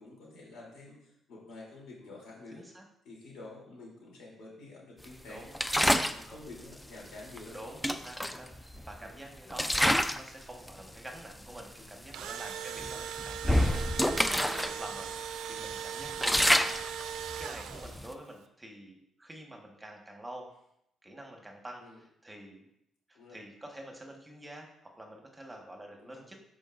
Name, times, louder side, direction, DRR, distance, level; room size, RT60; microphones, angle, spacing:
voice 1, 0.0-2.7 3.0-5.5 5.8-7.6 9.0-9.2 9.7-10.1 12.8-13.1 14.6-14.8 21.8-22.0 23.1-23.4 26.0-26.3, left 2 dB, 80° left, -3 dB, 3.1 m, -49 dB
voice 2, 2.5-2.8 5.3-6.4 7.5-17.0 17.4-20.5 21.0-22.6 23.1-26.4, right 1 dB, 15° right, 1 dB, 1.4 m, -48 dB
sound 1, 5.5-6.2 7.4-7.5 7.8-9.0 9.5-10.3 10.7-10.9 11.6-11.7 12.0-12.3 12.8-14.7 15.1-15.2 15.6-18.1, equal, 5° left, 0.4 m, -28 dB
Engine / Drill, 11.9-18.1, right 9 dB, 80° right, 0.5 m, -39 dB
13.0 x 4.8 x 2.6 m, 0.76 s
cardioid pair, 90°, 0 cm